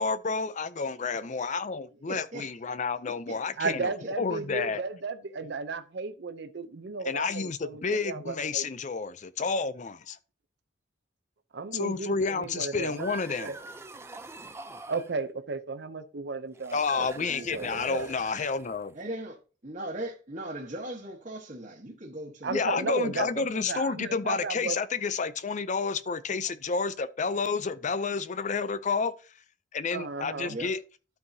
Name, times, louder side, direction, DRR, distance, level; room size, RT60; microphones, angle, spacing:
voice 1, 0.0-3.9 4.2-4.8 7.0-10.2 11.7-13.5 16.7-18.9 22.5-29.1 29.7-30.8, left 5 dB, 40° left, 0.5 m, -30 dB
voice 2, 2.1-2.5 3.1-3.4 4.0-4.4 18.9-19.4 19.6-22.6 23.0-23.3 30.5-30.8, right 1 dB, 40° right, 1.3 m, -39 dB
voice 3, 3.6-8.7 11.5-13.1 13.4-13.6 14.9-18.1 22.4-24.8 29.9-30.5, right 4 dB, 60° right, 0.6 m, -34 dB
sound 1, 12.7-15.2 16.5-19.0, right 2 dB, 15° right, 0.5 m, -44 dB
12.5 x 4.7 x 2.8 m
head